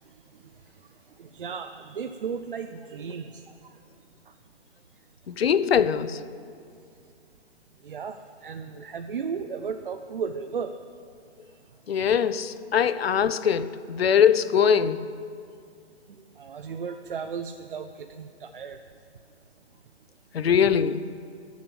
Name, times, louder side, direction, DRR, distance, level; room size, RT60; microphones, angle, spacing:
voice 1, 1.2-3.4 7.8-10.7 16.4-18.8, right 6 dB, 50° right, 0.6 m, -35 dB
voice 2, 5.3-6.2 11.9-15.1 20.3-21.1, left 7 dB, 60° left, 0.6 m, -22 dB
15.0 x 7.3 x 8.6 m
hypercardioid pair, 170°, 34 cm